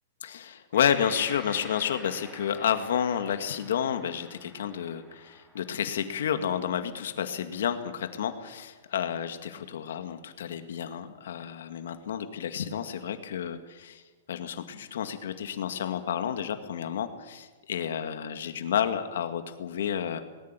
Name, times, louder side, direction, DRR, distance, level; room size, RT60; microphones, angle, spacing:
voice 1, 0.2-14.0 14.3-20.2, left 8 dB, 75° left, 8 dB, 2.1 m, -30 dB
Gong, 0.7-8.8, equal, 5° right, 2.5 m, -50 dB
19.0 x 18.5 x 9.1 m, 1.3 s
supercardioid pair, 165°, 0 cm